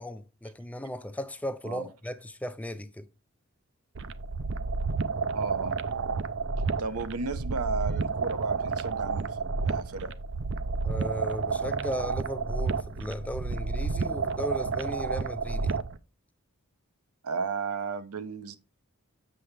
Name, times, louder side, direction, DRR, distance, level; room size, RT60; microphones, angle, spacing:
voice 1, 0.0-3.1 10.8-15.8, equal, 5° left, 0.4 m, -36 dB
sound 1, 3.9-16.0, right 4 dB, 55° right, 0.5 m, -30 dB
voice 2, 5.3-5.8 6.8-10.1 17.2-18.6, right 4 dB, 90° right, 0.8 m, -34 dB
7.6 x 6.8 x 3.4 m
head